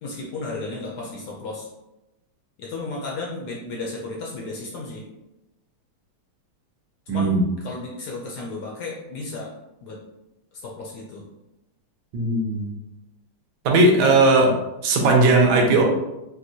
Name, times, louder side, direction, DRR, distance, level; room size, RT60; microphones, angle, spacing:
voice 1, 0.0-1.7 2.6-5.1 7.1-9.5 9.8-10.0 10.5-11.2, left 3 dB, 75° left, -3 dB, 0.9 m, -34 dB
voice 2, 7.1-7.4 12.1-12.7 13.6-14.5 14.8-15.8, right 2 dB, 80° right, 0 dB, 1.5 m, -17 dB
4.3 x 2.2 x 2.6 m, 0.95 s
omnidirectional pair, 2.3 m